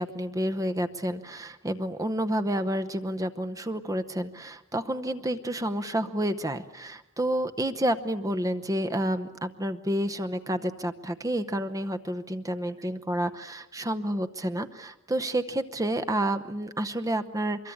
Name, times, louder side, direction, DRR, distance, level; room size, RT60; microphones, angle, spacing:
voice 1, 0.0-17.7, right 1 dB, 15° right, 8 dB, 0.8 m, -30 dB
24.5 x 23.0 x 8.6 m, 0.92 s
head